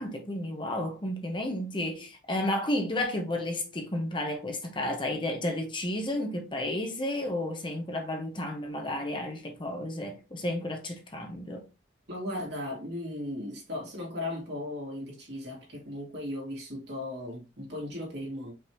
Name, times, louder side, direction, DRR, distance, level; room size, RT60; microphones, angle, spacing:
voice 1, 0.0-11.7, left 1 dB, 25° left, 0.9 m, -32 dB
voice 2, 12.1-18.5, left 1 dB, 65° right, 2.5 m, -37 dB
5.4 x 3.2 x 3.0 m
head